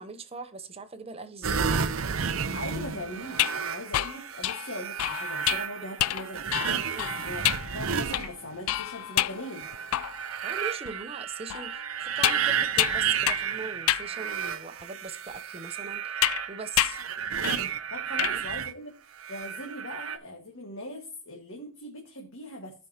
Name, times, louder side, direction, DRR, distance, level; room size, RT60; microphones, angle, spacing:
voice 1, 0.0-1.7 6.9-7.2 10.4-17.0 18.2-18.4, right 4 dB, 30° right, 0.8 m, -40 dB
sound 1, 1.4-8.8 9.4-18.7 19.2-20.2, right 7 dB, 75° right, 0.7 m, -32 dB
voice 2, 2.5-9.7 17.9-18.9 19.3-22.7, left 1 dB, 65° left, 1.7 m, -40 dB
sound 2, 3.3-10.4 10.8-10.9 11.5-13.6 13.9-14.1 14.8-14.9 16.2-16.4 16.8-17.1 17.4-17.7 17.9-18.4, left 14 dB, 90° left, 0.3 m, -29 dB
14.5 x 5.3 x 2.9 m
head